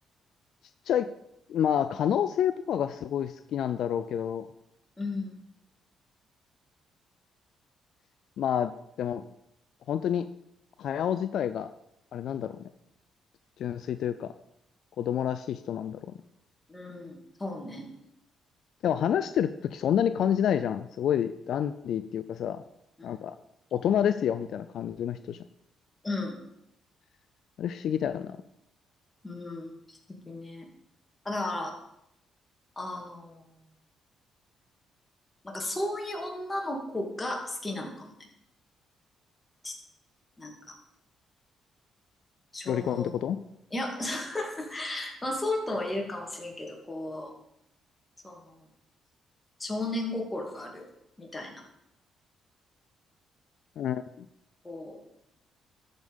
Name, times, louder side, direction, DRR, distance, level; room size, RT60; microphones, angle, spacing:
voice 1, 1.5-4.5 8.4-8.7 9.0-9.2 9.9-10.3 10.8-11.7 12.1-12.5 13.6-14.3 15.0-16.0 18.8-22.6 23.0-23.3 23.7-25.4 27.6-28.4 42.7-43.4 53.8-54.3, left 9 dB, 70° left, 11 dB, 0.4 m, -28 dB
voice 2, 5.0-5.4 16.7-17.9 23.0-23.2 26.0-26.3 29.2-29.7 30.3-30.7 31.2-31.7 32.8-33.4 35.4-38.1 39.6-39.7 40.4-40.8 42.5-43.2 43.7-47.3 48.2-48.5 49.6-50.8 51.2-51.6 54.6-55.0, left 2 dB, 15° left, 1 dB, 2.5 m, -34 dB
13.0 x 5.2 x 5.4 m, 0.80 s
cardioid pair, 90°, 0 cm